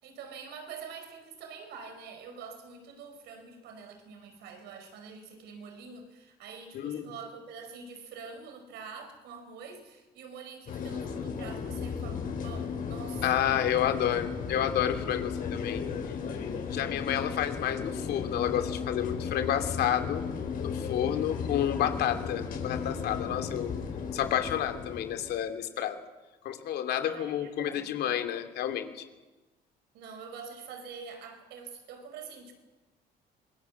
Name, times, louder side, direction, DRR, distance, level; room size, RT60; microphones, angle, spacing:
voice 1, 0.0-13.3 27.0-27.9 29.9-32.5, right 5 dB, 80° right, 4.9 m, -45 dB
sound 1, 10.7-25.4, left 6 dB, 55° left, 5.3 m, -35 dB
voice 2, 13.2-15.8 16.7-20.2 20.6-23.7 24.1-26.0 26.4-29.0, left 10 dB, 75° left, 2.8 m, -30 dB
25.5 x 21.5 x 7.4 m
cardioid pair, 110°, 17 cm